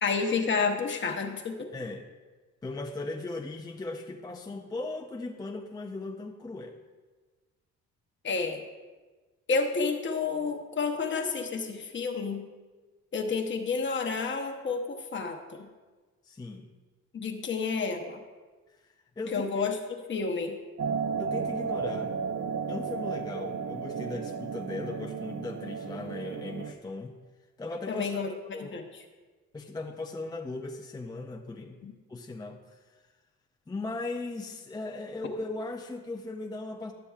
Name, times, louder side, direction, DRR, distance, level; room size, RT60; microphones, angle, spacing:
voice 1, 0.0-1.7 8.2-8.6 9.5-12.4 13.1-15.7 17.1-18.2 19.3-19.8 20.1-20.6 27.9-28.8 31.8-31.9, left 4 dB, 40° left, 3 dB, 0.9 m, -30 dB
voice 2, 1.7-2.0 2.6-6.8 16.2-16.7 18.8-19.7 21.2-22.2 22.7-27.2 27.6-28.8 29.5-31.8 32.1-33.0 33.7-36.9, left 2 dB, 15° left, 2 dB, 0.4 m, -38 dB
sound 1, 20.8-26.7, right 6 dB, 50° right, 0.6 m, -33 dB
11.5 x 6.8 x 2.4 m, 1.3 s
cardioid pair, 90°, 30 cm